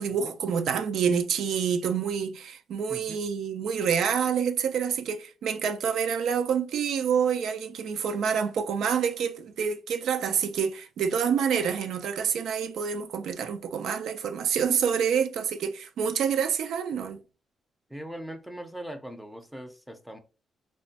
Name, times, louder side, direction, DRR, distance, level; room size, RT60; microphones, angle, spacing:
voice 1, 0.0-17.2, right 7 dB, 80° right, 0.3 m, -27 dB
voice 2, 2.9-3.2 17.9-20.2, right 1 dB, 5° right, 0.5 m, -40 dB
3.0 x 2.1 x 2.7 m
cardioid pair, 105°, 0 cm